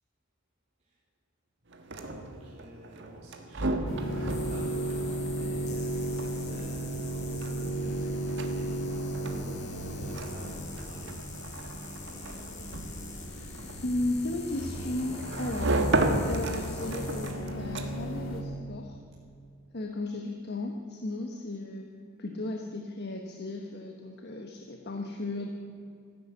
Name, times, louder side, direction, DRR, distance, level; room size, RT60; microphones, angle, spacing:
sound 1, 1.7-18.2, right 2 dB, 60° right, 1.4 m, -35 dB
voice 1, 1.9-11.1 11.8-13.0, right 1 dB, 30° right, -7 dB, 3.0 m, -49 dB
sound 2, 3.9-18.4, right 1 dB, 70° left, 2.0 m, -35 dB
sound 3, 4.3-17.3, left 5 dB, 35° left, 2.3 m, -47 dB
voice 2, 13.8-15.8 16.3-19.0 19.7-21.8 22.2-25.5, left 2 dB, 50° left, 3 dB, 1.1 m, -35 dB
14.5 x 11.0 x 8.1 m, 2.4 s
head